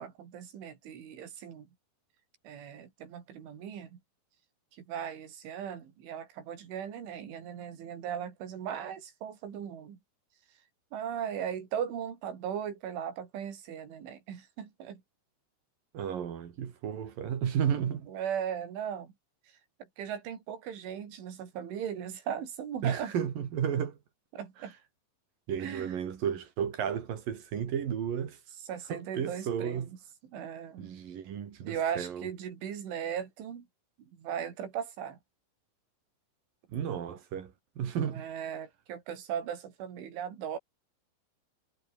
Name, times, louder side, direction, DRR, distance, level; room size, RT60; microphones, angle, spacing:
voice 1, 0.0-1.7 2.4-4.0 4.7-10.0 10.9-15.0 17.9-19.1 20.0-23.1 24.3-24.7 25.6-25.9 28.7-29.9 30.3-30.9 31.6-33.7 34.1-35.2 38.0-40.6, right 8 dB, 75° right, 6.1 m, -38 dB
voice 2, 15.9-18.1 22.8-24.0 25.5-28.4 28.9-29.9 30.8-32.3 36.7-38.3, right 8 dB, 50° right, 3.6 m, -33 dB
omnidirectional pair, 5.6 m